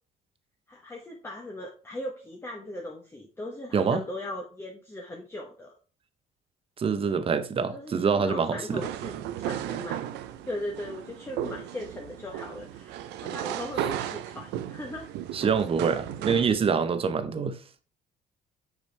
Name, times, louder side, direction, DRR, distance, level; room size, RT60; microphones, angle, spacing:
voice 1, 0.7-5.7 7.7-10.2 10.4-15.1 16.2-16.3, left 1 dB, 15° left, 1.0 m, -39 dB
voice 2, 6.8-8.8 15.3-17.6, right 6 dB, 35° right, 0.7 m, -25 dB
sound 1, 8.7-16.5, right 11 dB, 85° right, 0.5 m, -35 dB
6.4 x 5.1 x 3.3 m
cardioid pair, 110°, 17 cm